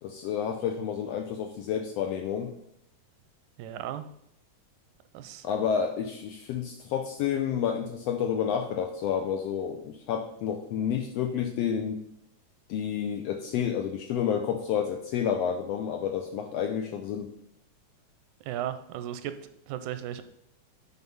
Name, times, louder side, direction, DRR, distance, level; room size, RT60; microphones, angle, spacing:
voice 1, 0.0-2.5 5.4-12.0 12.7-17.3, left 8 dB, 80° left, 5 dB, 1.5 m, -30 dB
voice 2, 3.6-4.1 5.1-5.5 18.4-19.4 19.7-20.2, right 11 dB, 85° right, 10 dB, 2.0 m, -35 dB
9.6 x 4.0 x 5.4 m, 0.74 s
omnidirectional pair, 3.5 m